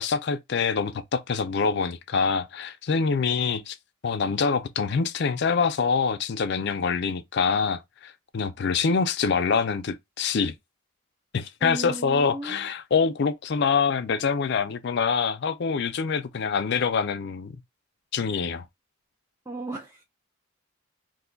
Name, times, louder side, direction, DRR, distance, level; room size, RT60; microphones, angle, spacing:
voice 1, 0.0-3.8 4.0-10.5 11.3-17.6 18.1-18.6, left 5 dB, 55° left, 0.4 m, -25 dB
voice 2, 11.6-12.7 19.5-20.0, right 3 dB, 15° right, 0.4 m, -35 dB
2.6 x 2.3 x 3.7 m
head